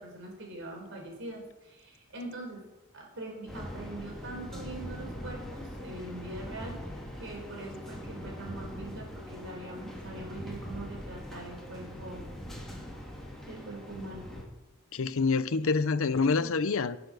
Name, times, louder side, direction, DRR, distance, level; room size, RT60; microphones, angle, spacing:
voice 1, 0.0-2.6 2.9-6.8 7.2-12.3 13.5-14.3 16.3-16.6, right 1 dB, 60° right, 4.3 m, -43 dB
sound 1, 3.5-14.4, equal, ahead, 2.6 m, -42 dB
voice 2, 14.9-17.0, left 4 dB, 70° left, 0.7 m, -26 dB
17.5 x 7.0 x 6.3 m
head